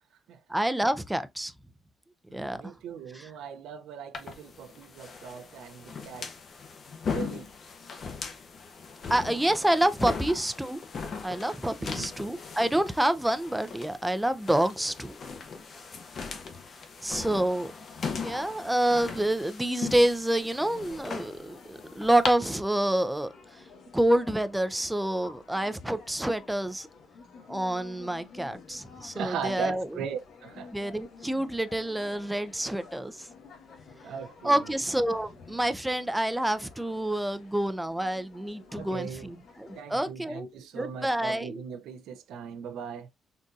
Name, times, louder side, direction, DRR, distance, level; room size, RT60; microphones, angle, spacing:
voice 1, 0.5-1.5 2.3-2.7 3.1-3.3 9.1-10.8 11.2-15.1 17.0-17.7 18.2-23.6 23.9-26.9 27.5-29.9 30.7-33.3 34.4-41.6, right 1 dB, 5° right, 0.4 m, -28 dB
voice 2, 2.3-6.3 7.1-7.5 11.8-12.1 29.1-30.7 34.0-34.7 38.7-39.3 39.7-43.1, right 6 dB, 80° right, 0.5 m, -38 dB
sound 1, 4.1-22.3, left 5 dB, 50° left, 0.8 m, -39 dB
sound 2, 20.3-39.8, left 4 dB, 70° left, 1.2 m, -51 dB
3.8 x 2.6 x 2.3 m
cardioid pair, 90°, 0 cm